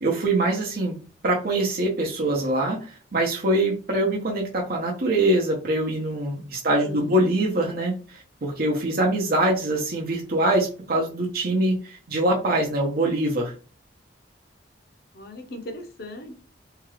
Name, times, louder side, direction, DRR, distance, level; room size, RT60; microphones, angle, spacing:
voice 1, 0.0-1.0 1.2-13.5, right 1 dB, 55° right, -1 dB, 0.7 m, -24 dB
voice 2, 6.8-7.3 15.1-16.4, left 1 dB, 55° left, 6 dB, 0.7 m, -38 dB
2.8 x 2.3 x 3.2 m, 0.36 s
head